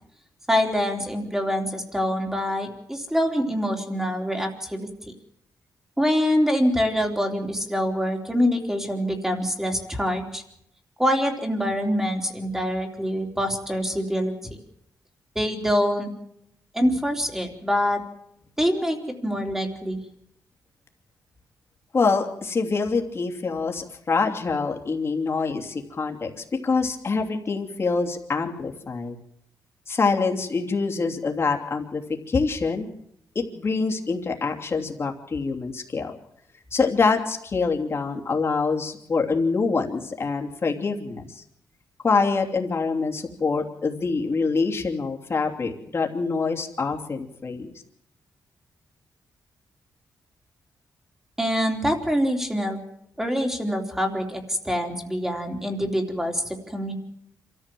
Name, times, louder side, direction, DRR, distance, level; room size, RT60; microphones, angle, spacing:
voice 1, 0.5-5.1 6.0-10.4 11.0-14.3 15.4-16.1 16.7-18.0 18.6-20.0 51.4-52.8 53.2-56.9, equal, 5° right, 3 dB, 3.4 m, -25 dB
voice 2, 21.9-29.1 29.9-32.0 32.3-32.9 33.3-36.1 36.7-41.4 42.0-47.7, left 4 dB, 40° left, 2 dB, 2.9 m, -25 dB
26.5 x 14.0 x 7.7 m, 0.76 s
cardioid pair, 120°, 7 cm